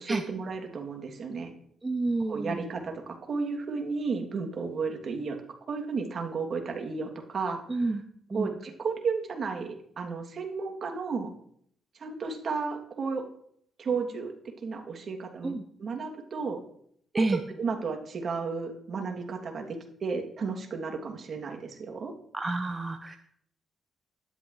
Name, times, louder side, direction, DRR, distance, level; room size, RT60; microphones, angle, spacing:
voice 1, 0.0-1.5 2.3-5.4 5.7-7.8 8.3-11.3 12.0-13.3 13.8-16.6 17.1-22.1, right 4 dB, 55° right, 3 dB, 2.7 m, -33 dB
voice 2, 1.8-2.7 7.7-8.0 8.3-8.5 15.4-15.6 17.1-17.4 22.3-23.2, right 2 dB, 25° right, 7 dB, 0.9 m, -29 dB
13.0 x 11.5 x 3.3 m, 0.66 s
supercardioid pair, 55°, 0 cm